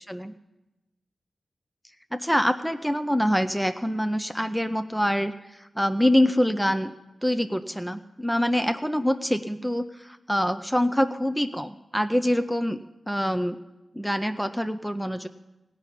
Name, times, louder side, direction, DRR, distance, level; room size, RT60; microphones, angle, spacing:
voice 1, 2.1-5.3 5.8-6.9 7.2-12.8 13.1-13.6 13.9-15.3, equal, ahead, 8 dB, 0.6 m, -25 dB
16.5 x 6.0 x 9.8 m, 1.0 s
cardioid pair, 65°, 0 cm